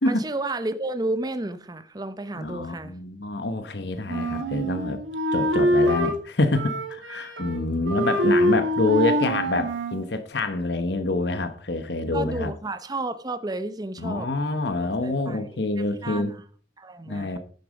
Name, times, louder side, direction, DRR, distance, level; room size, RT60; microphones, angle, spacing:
voice 1, 0.0-2.9 12.1-14.3 14.8-16.4 16.8-17.4, right 2 dB, 20° right, 0.7 m, -32 dB
voice 2, 2.3-5.0 5.3-12.5 14.0-16.3 17.1-17.4, left 2 dB, 60° left, 1.1 m, -26 dB
Wind instrument woodwind instrument, 4.1-6.2 6.5-7.6 7.8-10.0, equal, 85° right, 2.3 m, -24 dB
11.5 x 6.7 x 5.2 m
head